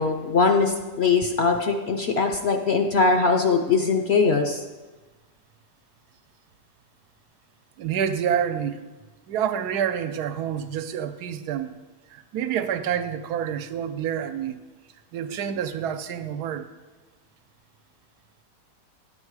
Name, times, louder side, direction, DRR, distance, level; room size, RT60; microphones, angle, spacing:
voice 1, 0.0-4.6, left 4 dB, 60° left, 4 dB, 0.7 m, -21 dB
voice 2, 7.8-8.8 9.3-11.7 12.1-14.6 15.1-16.7, right 9 dB, 85° right, 10 dB, 1.2 m, -28 dB
10.5 x 7.7 x 4.7 m, 1.2 s
omnidirectional pair, 1.7 m